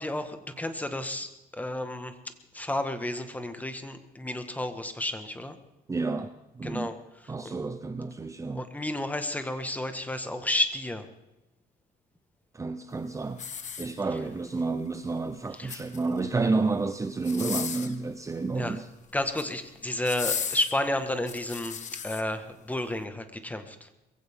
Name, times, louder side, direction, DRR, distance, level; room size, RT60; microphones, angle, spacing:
voice 1, 0.0-2.1 2.5-5.6 6.6-7.0 7.4-7.5 8.5-11.1 15.6-15.8 18.5-18.8 19.1-21.8 22.0-23.9, left 1 dB, 10° left, 1.7 m, -31 dB
voice 2, 5.9-6.9 7.3-8.7 12.5-13.4 13.8-18.9, right 3 dB, 20° right, 0.8 m, -30 dB
sound 1, 13.3-14.4 15.5-16.2 17.2-18.0 19.1-19.5 20.0-22.2 22.8-22.9, left 7 dB, 45° left, 1.6 m, -36 dB
22.0 x 16.0 x 3.8 m
cardioid pair, 110°, 17 cm